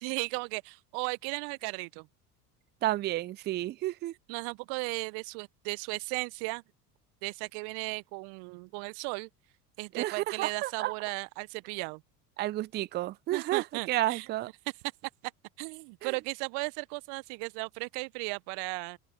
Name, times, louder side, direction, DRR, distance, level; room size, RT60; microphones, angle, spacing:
voice 1, 0.0-2.1 4.3-6.6 7.2-9.3 9.8-12.0 13.3-14.3 15.6-19.0, right 33 dB, 55° right, 0.7 m, -36 dB
voice 2, 2.8-4.1 9.9-10.9 12.4-14.5 16.0-16.1, right 16 dB, 25° right, 0.4 m, -31 dB
open air
hypercardioid pair, 75°, 47 cm